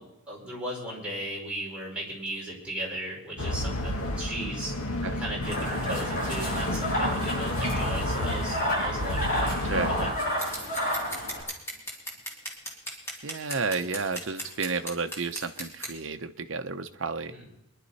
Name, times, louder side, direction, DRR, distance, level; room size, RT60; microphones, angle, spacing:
voice 1, 0.0-4.8 5.2-10.1 17.3-17.4, right 1 dB, 5° right, -5 dB, 4.8 m, -37 dB
sound 1, 3.4-10.1, left 1 dB, 85° left, 1.4 m, -31 dB
sound 2, 5.4-11.4, equal, 35° left, 7.4 m, -30 dB
Scissors, 10.4-15.9, equal, 10° left, 2.3 m, -37 dB
voice 2, 13.2-17.3, right 4 dB, 60° right, 7 dB, 0.8 m, -32 dB
23.5 x 11.0 x 4.2 m, 0.90 s
head